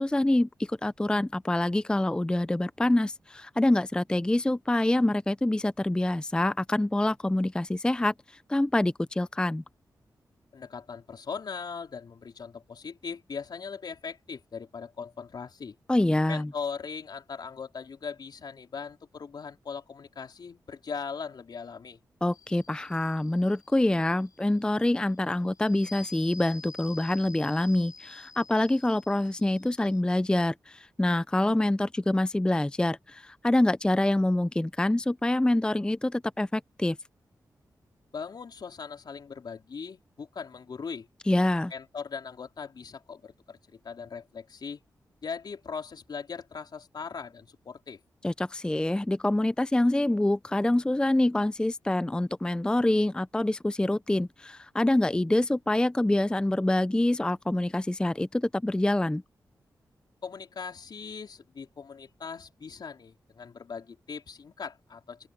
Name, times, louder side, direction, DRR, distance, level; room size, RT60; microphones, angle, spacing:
voice 1, 0.0-9.6 15.9-16.5 22.2-37.0 41.3-41.7 48.2-59.2, left 1 dB, 10° left, 0.5 m, -26 dB
voice 2, 10.5-15.8 16.3-22.0 38.1-41.1 41.7-43.6 43.8-44.8 45.2-48.0 60.2-65.3, left 5 dB, 70° left, 4.0 m, -39 dB
sound 1, 22.3-30.0, left 4 dB, 50° left, 6.3 m, -50 dB
open air
cardioid pair, 55°, 8 cm